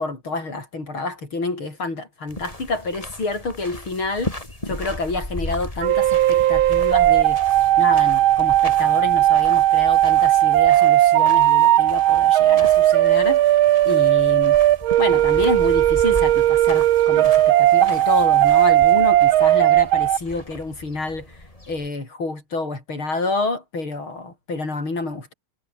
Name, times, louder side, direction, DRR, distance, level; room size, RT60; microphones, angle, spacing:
voice 1, 0.0-4.4 4.7-7.4 7.8-13.6 13.9-14.6 15.0-21.4 21.7-25.3, left 3 dB, 70° left, 7.1 m, -28 dB
sound 1, 2.3-21.9, left 1 dB, 15° left, 4.4 m, -37 dB
sound 2, 5.8-20.2, right 13 dB, 75° right, 1.6 m, -16 dB
omnidirectional pair, 2.4 m